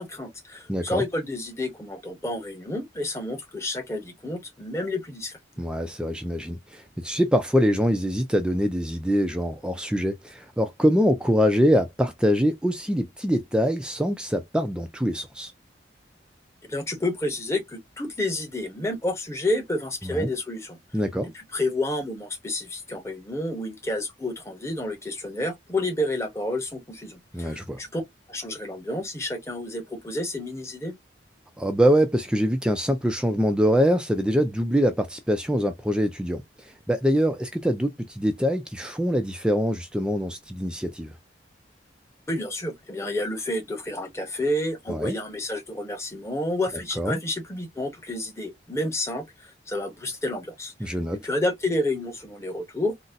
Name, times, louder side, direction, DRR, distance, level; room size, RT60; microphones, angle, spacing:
voice 1, 0.0-5.4 16.7-20.8 21.3-28.0 28.3-30.9 42.3-51.0 51.2-53.0, left 1 dB, 15° left, 0.9 m, -30 dB
voice 2, 0.7-1.0 5.6-15.5 20.0-20.3 20.9-21.3 27.3-27.8 31.6-41.1 44.9-45.1 47.0-47.2 50.8-51.2, equal, 5° right, 0.4 m, -24 dB
3.9 x 2.1 x 2.5 m
head